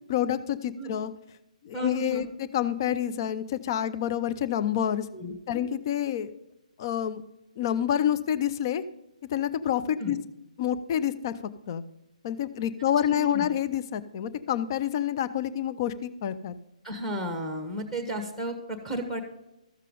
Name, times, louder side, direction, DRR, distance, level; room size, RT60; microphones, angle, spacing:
voice 1, 0.1-1.1 1.6-5.1 5.5-6.3 6.8-7.2 7.6-8.8 9.3-10.2 10.6-11.3 11.7-11.8 12.2-16.6, left 10 dB, 35° left, 14 dB, 0.5 m, -28 dB
voice 2, 1.7-2.3 5.1-5.6 10.0-10.1 13.1-13.5 16.8-19.2, right 1 dB, 5° left, 6 dB, 1.2 m, -34 dB
13.5 x 7.4 x 3.8 m, 0.91 s
figure-of-eight pair, 135°, 4 cm